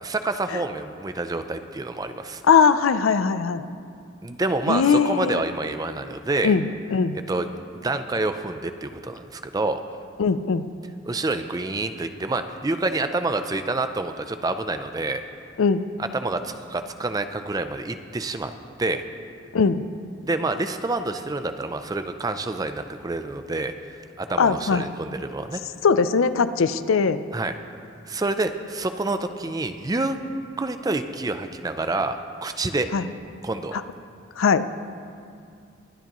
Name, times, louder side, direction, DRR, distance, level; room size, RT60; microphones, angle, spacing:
voice 1, 0.0-2.4 4.2-6.5 7.1-7.5 7.7-9.8 11.1-15.2 16.0-18.5 18.8-19.0 20.2-25.6 27.3-27.5 28.1-30.2 30.6-32.9 33.4-33.8, right 2 dB, 20° right, 8 dB, 0.4 m, -28 dB
voice 2, 2.5-3.6 4.7-5.4 6.4-6.6 6.9-7.2 10.2-10.7 15.6-15.8 19.5-19.8 24.4-24.8 25.8-27.2 32.9-33.0 33.7-33.8 34.4-34.7, left 5 dB, 85° left, 12 dB, 0.5 m, -20 dB
23.5 x 9.5 x 3.0 m, 2.3 s
head